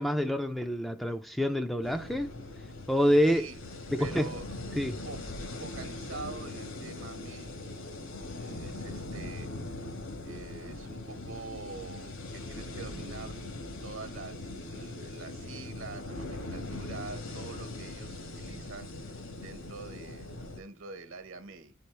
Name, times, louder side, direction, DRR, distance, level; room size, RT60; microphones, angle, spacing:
voice 1, 0.0-2.3 2.9-3.4 3.9-4.3 4.8-5.0, equal, ahead, 0.3 m, -27 dB
sound 1, 1.8-20.6, left 2 dB, 65° left, 1.2 m, -41 dB
voice 2, 3.3-3.6 4.0-4.5 5.0-5.2 5.6-7.6 8.3-9.5 9.8-9.9 10.2-13.4 13.8-21.7, right 3 dB, 65° right, 1.1 m, -45 dB
9.8 x 4.3 x 3.3 m
head